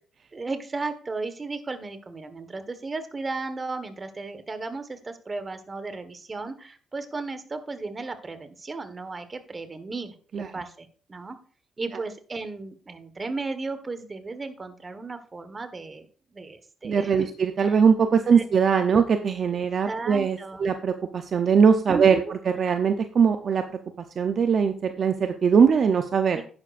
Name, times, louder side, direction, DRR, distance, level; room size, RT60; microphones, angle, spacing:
voice 1, 0.3-11.4 11.8-16.0 16.3-17.3 17.7-17.8 18.3-18.4 19.9-20.6 21.9-22.3 26.3-26.4, right 3 dB, 30° right, 9 dB, 1.5 m, -35 dB
voice 2, 16.8-23.6 24.2-26.4, right 6 dB, 50° right, 7 dB, 0.8 m, -21 dB
10.5 x 10.0 x 2.6 m, 0.42 s
cardioid pair, 90°, 0 cm